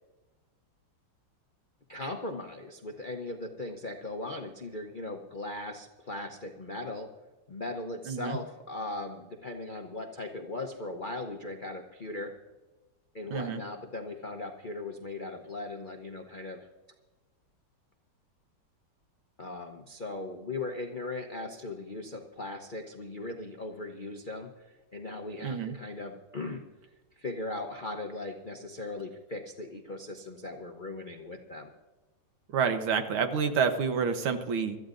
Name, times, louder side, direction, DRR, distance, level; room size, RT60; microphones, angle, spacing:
voice 1, 1.9-7.1 7.5-12.3 13.1-16.7 19.4-26.6 27.2-31.7, left 2 dB, 60° left, 3 dB, 0.5 m, -38 dB
voice 2, 8.1-8.4 13.3-13.6 25.4-25.8 32.5-34.8, right 6 dB, 75° right, 7 dB, 1.9 m, -28 dB
25.0 x 13.5 x 2.6 m, 1.2 s
omnidirectional pair, 2.3 m